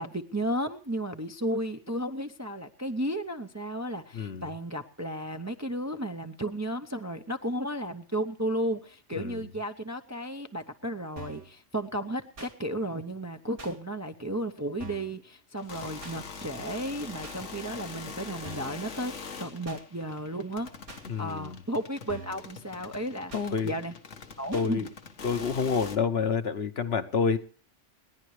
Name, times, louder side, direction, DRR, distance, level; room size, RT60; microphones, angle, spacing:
voice 1, 0.0-20.7 21.2-23.3 23.6-23.9 24.4-24.9, right 1 dB, 20° right, 6 dB, 0.6 m, -34 dB
voice 2, 4.1-4.5 9.1-9.5 21.0-21.6 23.3-23.7 24.5-24.9 25.2-27.4, left 5 dB, 60° left, 8 dB, 1.2 m, -28 dB
sound 1, 11.2-11.5 12.4-12.5 13.6-13.7 14.8-15.1 16.0-16.2 17.2-17.4 18.4-18.8 19.6-19.8 20.9-21.0 22.1-22.4 23.3-23.5 24.5-24.7, right 1 dB, 80° right, 2.6 m, -44 dB
sound 2, 15.6-26.0, left 5 dB, 85° left, 1.7 m, -44 dB
29.0 x 10.5 x 3.2 m, 0.40 s
omnidirectional pair, 1.2 m